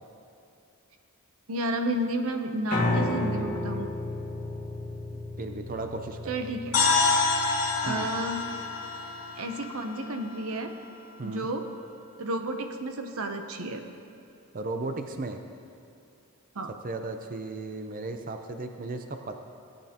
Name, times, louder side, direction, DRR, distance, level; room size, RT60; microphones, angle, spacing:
voice 1, 1.5-3.9 6.3-6.8 7.8-8.4 9.4-10.7 11.2-11.7 12.2-13.8 16.5-16.7, right 1 dB, 75° right, 6 dB, 0.8 m, -31 dB
Piano, 2.7-8.9, left 2 dB, 35° left, 1.5 m, -33 dB
voice 2, 5.4-6.3 7.9-8.1 11.2-11.5 14.5-15.4 16.8-19.4, right 3 dB, 40° right, 6 dB, 0.6 m, -35 dB
sound 1, 6.7-10.7, left 4 dB, 80° left, 1.8 m, -27 dB
17.0 x 8.8 x 2.9 m, 2.6 s
head